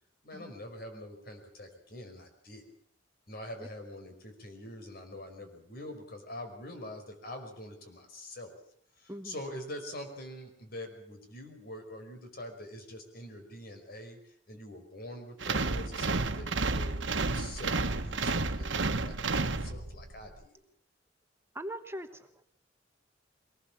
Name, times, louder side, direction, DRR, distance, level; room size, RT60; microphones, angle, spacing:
voice 1, 0.2-2.6 3.3-8.6 9.0-14.2 14.5-20.6, left 1 dB, 55° left, 5 dB, 5.3 m, -45 dB
voice 2, 9.1-9.4 21.5-22.4, equal, 15° right, 7 dB, 1.1 m, -41 dB
sound 1, 15.4-20.1, right 3 dB, 90° right, 1.4 m, -31 dB
23.5 x 19.5 x 7.4 m, 0.67 s
head